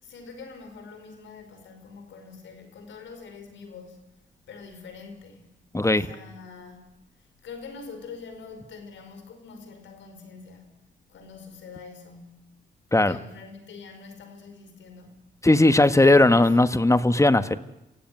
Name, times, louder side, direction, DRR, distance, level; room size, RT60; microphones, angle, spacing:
voice 1, 0.0-4.0 4.5-10.8 11.1-12.5 12.9-15.2 15.8-16.5, left 4 dB, 80° left, 5.0 m, -45 dB
voice 2, 5.7-6.1 12.9-13.2 15.4-17.6, left 2 dB, 15° left, 1.5 m, -18 dB
27.5 x 16.0 x 9.5 m
supercardioid pair, 60°, 19 cm